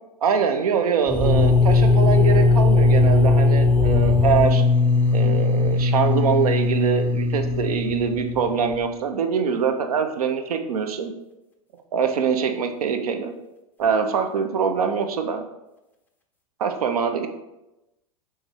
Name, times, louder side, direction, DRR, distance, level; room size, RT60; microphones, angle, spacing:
voice 1, 0.2-4.6 5.1-11.1 11.9-13.3 13.8-15.5 16.6-17.3, right 6 dB, 85° right, 6 dB, 0.5 m, -23 dB
sound 1, 1.1-8.8, left 3 dB, 10° left, 0.5 m, -19 dB
3.2 x 3.1 x 3.6 m, 0.95 s
hypercardioid pair, 100°, 19 cm